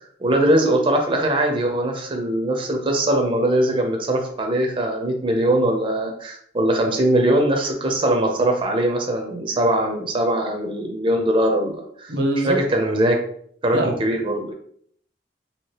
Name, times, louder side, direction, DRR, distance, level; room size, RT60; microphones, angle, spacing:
voice 1, 0.2-12.1 12.4-13.2 13.6-14.5, right 1 dB, 30° right, 2 dB, 0.5 m, -21 dB
voice 2, 12.1-12.6 13.7-14.0, right 1 dB, 85° right, 4 dB, 0.7 m, -22 dB
2.8 x 2.8 x 3.2 m, 0.64 s
head